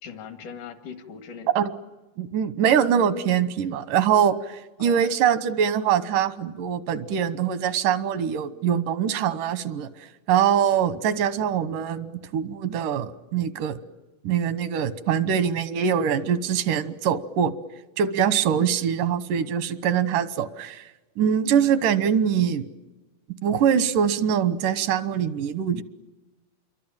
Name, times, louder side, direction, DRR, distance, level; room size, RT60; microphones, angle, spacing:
voice 1, 0.0-1.6 4.8-5.1 18.5-18.7, left 6 dB, 80° left, 8 dB, 3.5 m, -40 dB
voice 2, 2.2-9.9 10.3-13.8 14.2-17.5 18.0-20.8 21.2-22.6 23.4-25.8, right 8 dB, 85° right, 14 dB, 2.8 m, -23 dB
28.5 x 23.0 x 8.9 m, 1.1 s
omnidirectional pair, 3.7 m